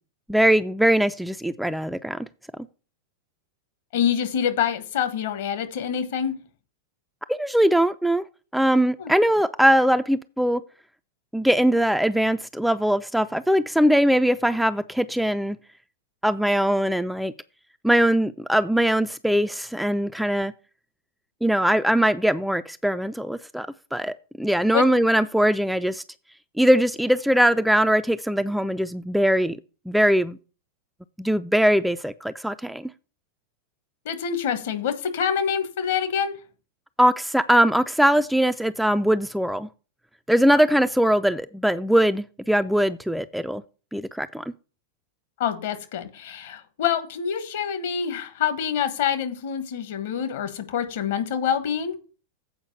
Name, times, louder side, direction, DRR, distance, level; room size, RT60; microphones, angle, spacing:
voice 1, 0.3-2.3 7.3-8.2 8.5-10.6 11.3-15.6 16.2-17.3 17.8-20.5 21.4-26.0 26.6-29.6 29.9-30.4 31.2-32.9 37.0-39.7 40.3-43.6 43.9-44.4, equal, ahead, 0.3 m, -21 dB
voice 2, 3.9-6.4 9.0-9.1 24.7-24.8 34.0-36.4 45.4-52.0, left 8 dB, 55° left, 1.3 m, -26 dB
8.0 x 5.0 x 6.5 m
figure-of-eight pair, 90°, 0 cm